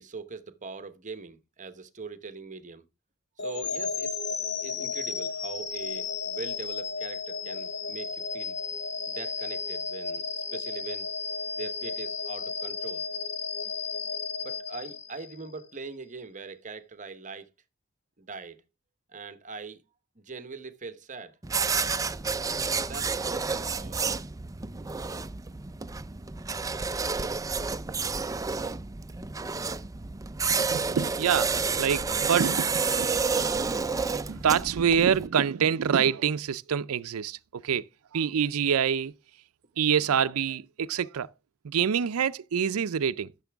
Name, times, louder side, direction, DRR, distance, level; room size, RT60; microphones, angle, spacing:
voice 1, 0.0-2.8 3.4-8.6 9.1-11.1 11.5-13.0 14.4-17.5 18.2-18.6 19.1-19.8 20.1-22.0 22.8-24.1, right 4 dB, 35° right, 1.0 m, -42 dB
sound 1, 3.4-15.5, left 5 dB, 55° left, 1.7 m, -34 dB
sound 2, 21.4-35.3, right 5 dB, 15° right, 0.4 m, -30 dB
voice 2, 30.5-33.1 34.3-37.8 38.1-39.1 39.8-41.3 41.6-43.3, right 7 dB, 85° right, 0.5 m, -26 dB
14.0 x 6.9 x 3.5 m
head